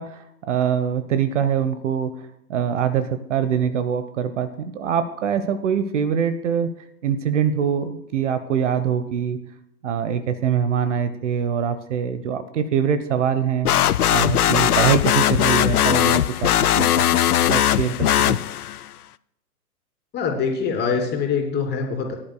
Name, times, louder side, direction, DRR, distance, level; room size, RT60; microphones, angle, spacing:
voice 1, 0.0-6.7 7.0-9.4 9.8-13.7 14.1-16.5 16.7-17.1 17.5-18.4, right 8 dB, 50° right, 11 dB, 1.1 m, -23 dB
sound 1, 13.6-18.9, left 11 dB, 70° left, 0.6 m, -19 dB
voice 2, 20.1-22.2, left 5 dB, 20° left, 2 dB, 2.9 m, -24 dB
19.0 x 11.0 x 2.3 m, 0.80 s
figure-of-eight pair, 115°, 47 cm